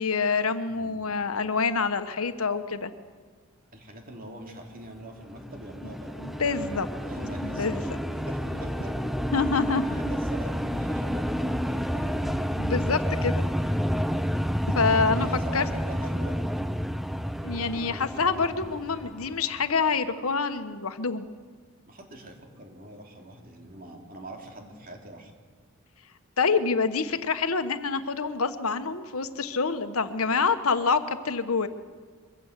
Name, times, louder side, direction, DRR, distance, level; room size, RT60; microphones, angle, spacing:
voice 1, 0.0-2.9 6.2-6.9 7.4-7.8 9.3-9.8 12.5-13.5 14.7-15.3 15.5-15.7 17.4-21.3 26.4-31.7, left 4 dB, 80° left, 10 dB, 1.2 m, -26 dB
voice 2, 0.7-1.3 3.7-6.3 7.0-9.0 9.7-12.3 14.9-16.4 21.9-25.3, right 1 dB, 40° right, 2 dB, 3.3 m, -43 dB
sound 1, 5.1-9.9, left 1 dB, 45° left, 3.0 m, -48 dB
sound 2, 5.2-19.7, equal, ahead, 0.6 m, -30 dB
23.0 x 16.0 x 8.2 m, 1.5 s
head